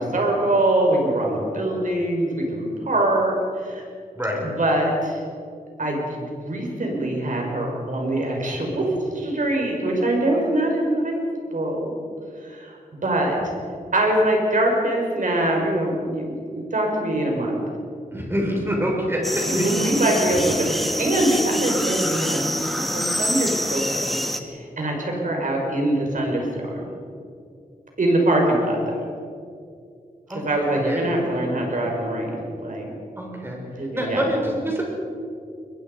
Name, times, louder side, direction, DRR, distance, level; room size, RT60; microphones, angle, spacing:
voice 1, 0.0-3.8 4.4-5.2 5.8-11.2 11.5-11.9 12.4-12.8 13.0-13.4 13.9-17.6 19.4-24.2 24.5-26.9 28.0-29.1 30.3-32.9 33.8-34.3, right 1 dB, 60° right, 0 dB, 5.8 m, -23 dB
voice 2, 18.1-19.4 30.3-30.4 30.8-31.1 33.2-33.6 33.9-34.8, equal, 15° right, -1 dB, 6.3 m, -25 dB
sound 1, 19.2-24.4, equal, ahead, 1.6 m, -26 dB
22.5 x 21.5 x 5.5 m, 2.4 s
wide cardioid pair, 100°, 15 cm